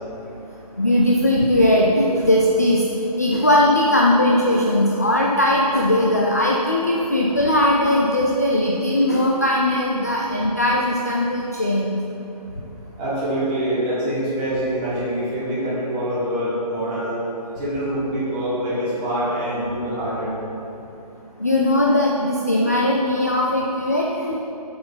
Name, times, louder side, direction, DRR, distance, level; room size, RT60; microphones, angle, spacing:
voice 1, 0.8-11.9 21.4-24.4, left 1 dB, 25° left, -3 dB, 0.4 m, -19 dB
voice 2, 13.0-17.2 17.6-20.4, right 1 dB, 10° right, -9 dB, 1.5 m, -25 dB
7.9 x 6.7 x 5.5 m, 2.9 s
hypercardioid pair, 170°, 21 cm